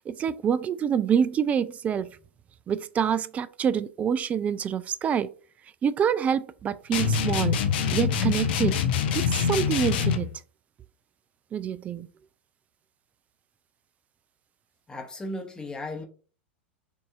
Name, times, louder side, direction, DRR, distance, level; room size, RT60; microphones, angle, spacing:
voice 1, 0.1-2.1 2.7-5.3 5.8-7.6 7.9-8.7 9.1-9.2 9.5-10.3 11.5-12.1, right 8 dB, 20° right, 0.3 m, -26 dB
sound 1, 6.9-10.3, left 7 dB, 55° left, 0.7 m, -25 dB
voice 2, 14.9-16.0, left 1 dB, 10° left, 0.9 m, -35 dB
6.2 x 2.7 x 2.4 m
figure-of-eight pair, 90°, 6 cm